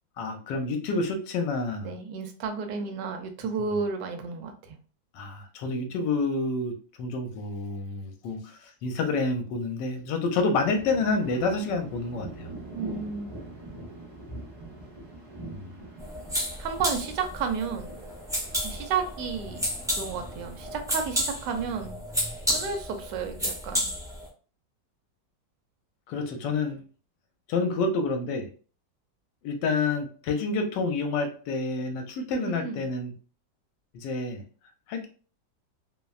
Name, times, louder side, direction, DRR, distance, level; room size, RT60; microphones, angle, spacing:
voice 1, 0.2-1.9 3.7-3.8 5.1-12.5 15.4-15.7 26.1-26.8 27.5-28.5 29.4-33.1 33.9-34.4 34.9-35.1, left 3 dB, 80° left, 5 dB, 1.2 m, -28 dB
voice 2, 1.8-4.8 12.7-13.4 16.6-17.9 18.6-19.7 20.0-22.0 22.5-23.9 32.3-32.9, right 5 dB, 75° right, 5 dB, 1.1 m, -32 dB
sound 1, 10.6-21.9, right 2 dB, 60° right, 0.4 m, -44 dB
sound 2, 16.0-24.3, equal, 5° right, 0.6 m, -32 dB
3.0 x 2.1 x 2.3 m, 0.39 s
omnidirectional pair, 1.9 m